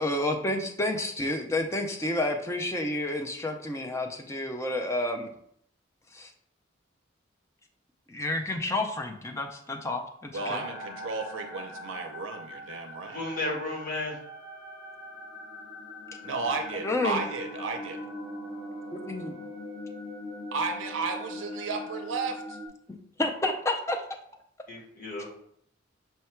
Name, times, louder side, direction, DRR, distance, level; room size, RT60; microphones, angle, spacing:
voice 1, 0.0-5.3 6.1-6.3 8.1-10.6 16.8-17.2 18.9-19.4 23.2-24.0, left 2 dB, 15° left, 3 dB, 0.4 m, -30 dB
sound 1, 10.3-22.7, left 1 dB, 70° left, 1.2 m, -41 dB
voice 2, 10.3-13.2 16.2-18.0 20.5-22.6, right 4 dB, 75° right, 4 dB, 0.5 m, -33 dB
voice 3, 13.1-14.2 24.7-25.3, left 2 dB, 45° left, -2 dB, 1.1 m, -33 dB
5.5 x 2.2 x 4.3 m, 0.68 s
head